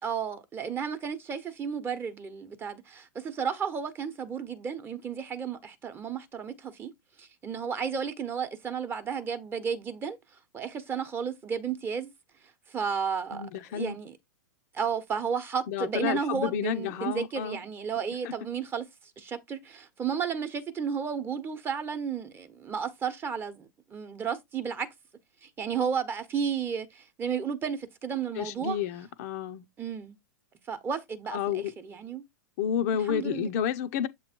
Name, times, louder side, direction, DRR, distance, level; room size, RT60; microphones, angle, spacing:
voice 1, 0.0-6.9 7.2-10.2 10.5-12.1 12.7-14.2 14.7-18.8 19.2-24.9 25.4-28.8 29.8-30.2 30.7-32.2 33.1-33.5, right 7 dB, 20° right, 1.0 m, -33 dB
voice 2, 13.3-14.0 15.7-17.6 18.2-18.3 28.3-29.6 31.3-31.7 32.6-34.1, left 8 dB, 50° left, 0.7 m, -30 dB
7.4 x 3.0 x 4.4 m
hypercardioid pair, 115°, 11 cm